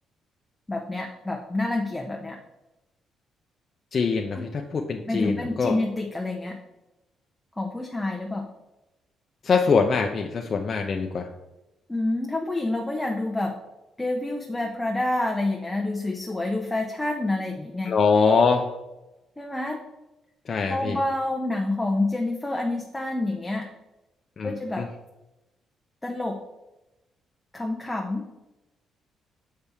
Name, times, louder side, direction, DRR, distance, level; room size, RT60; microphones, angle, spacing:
voice 1, 0.7-2.4 4.3-4.4 5.1-6.6 7.6-8.5 11.9-13.6 14.0-17.9 19.4-19.8 20.7-23.7 24.4-24.8 26.0-26.4 27.5-28.3, left 2 dB, 10° left, 1 dB, 0.8 m, -28 dB
voice 2, 3.9-5.7 9.4-11.3 17.9-18.7 20.5-21.0 24.4-24.9, left 5 dB, 45° left, 3 dB, 0.5 m, -23 dB
6.6 x 5.5 x 3.5 m, 0.99 s
cardioid pair, 90°, 0 cm